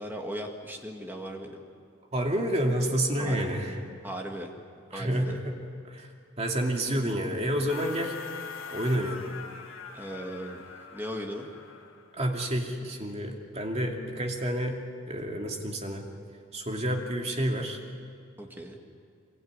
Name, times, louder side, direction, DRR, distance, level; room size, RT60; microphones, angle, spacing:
voice 1, 0.0-1.6 3.2-3.5 4.0-4.5 4.9-5.4 9.9-10.6 10.9-11.5 18.4-18.8, equal, 10° right, 2 dB, 2.0 m, -37 dB
voice 2, 2.1-3.8 4.9-5.6 5.8-6.1 6.4-8.1 8.7-9.2 12.1-14.8 15.1-16.0 16.5-17.8, right 1 dB, 30° right, 1 dB, 2.6 m, -29 dB
sound 1, 7.7-12.2, left 5 dB, 75° left, 1.9 m, -43 dB
24.0 x 22.0 x 9.6 m, 2.2 s
head